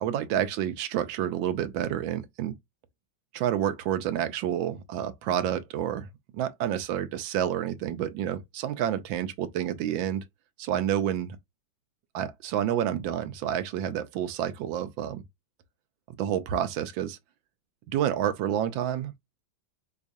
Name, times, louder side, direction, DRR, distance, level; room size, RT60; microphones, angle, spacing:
voice 1, 0.0-2.5 3.3-6.1 6.3-10.2 10.6-11.4 12.1-15.2 16.2-17.2 17.9-19.1, right 10 dB, 90° right, 1.4 m, -29 dB
4.6 x 2.4 x 2.5 m
omnidirectional pair, 2.1 m